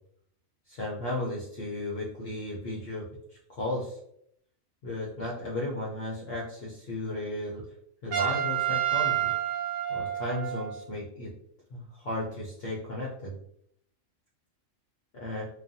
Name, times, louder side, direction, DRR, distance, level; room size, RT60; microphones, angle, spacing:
voice 1, 0.7-3.0 3.5-4.0 4.8-7.6 8.0-9.3 9.9-11.3 11.7-13.3 15.1-15.5, left 1 dB, 60° left, -5 dB, 0.7 m, -34 dB
Trumpet, 8.1-10.8, right 12 dB, 80° right, 1.0 m, -29 dB
2.3 x 2.3 x 2.6 m, 0.72 s
omnidirectional pair, 1.4 m